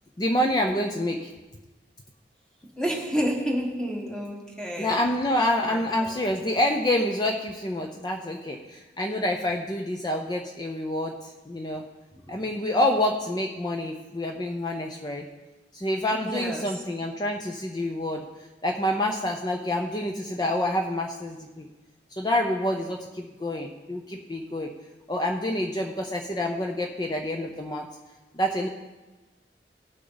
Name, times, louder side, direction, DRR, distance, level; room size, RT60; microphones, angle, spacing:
voice 1, 0.2-1.3 4.8-11.2 11.5-11.8 12.3-15.3 15.7-18.2 18.6-21.7 22.2-24.7 25.1-27.9 28.3-28.7, left 1 dB, 25° left, 2 dB, 0.6 m, -27 dB
voice 2, 2.8-5.0 5.7-6.4 12.1-12.4 16.1-16.8, equal, 5° left, -1 dB, 1.5 m, -30 dB
18.0 x 6.5 x 3.9 m, 1.2 s
head